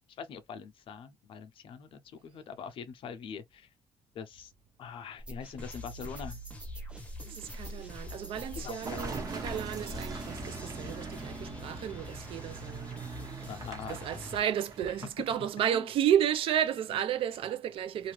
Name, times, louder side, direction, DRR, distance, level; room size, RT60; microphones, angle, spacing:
voice 1, 0.1-3.7 4.1-4.5 4.8-6.4 8.6-9.0 13.5-14.4 15.7-15.9, left 6 dB, 65° left, 0.6 m, -43 dB
sound 1, 5.2-10.3, right 1 dB, 10° right, 0.4 m, -45 dB
sound 2, 5.6-14.4, left 1 dB, 15° left, 0.8 m, -46 dB
voice 2, 7.3-13.0 13.3-13.5 13.9-18.1, right 10 dB, 75° right, 0.6 m, -32 dB
Car passing by / Engine, 8.8-15.4, right 3 dB, 40° right, 1.1 m, -41 dB
2.6 x 2.4 x 3.1 m
cardioid pair, 130°, 9 cm